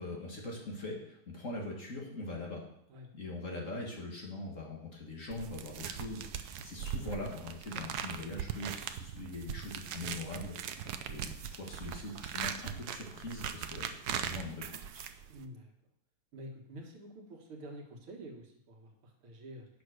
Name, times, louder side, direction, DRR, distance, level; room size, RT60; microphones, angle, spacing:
voice 1, 0.0-2.6 3.1-14.6 14.9-15.1, left 2 dB, 40° left, -2 dB, 2.1 m, -42 dB
sound 1, 5.3-15.5, right 8 dB, 70° right, 1.0 m, -40 dB
voice 2, 15.3-15.7 16.3-19.7, right 1 dB, 90° right, 1 dB, 2.4 m, -48 dB
8.8 x 6.0 x 6.4 m, 0.74 s
omnidirectional pair, 2.3 m